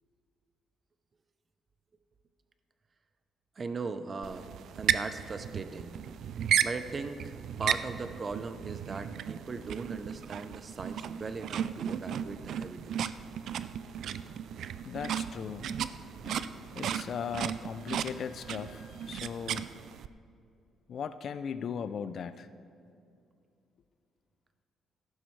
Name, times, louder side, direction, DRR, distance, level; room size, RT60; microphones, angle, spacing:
voice 1, 3.6-5.9 6.6-13.1, right 4 dB, 40° right, 10 dB, 0.7 m, -39 dB
sound 1, 4.2-20.1, right 9 dB, 70° right, 0.3 m, -35 dB
voice 2, 14.8-19.7 20.9-22.5, left 7 dB, 60° left, 12 dB, 0.4 m, -39 dB
14.5 x 11.0 x 3.3 m, 2.4 s
cardioid pair, 90°, 0 cm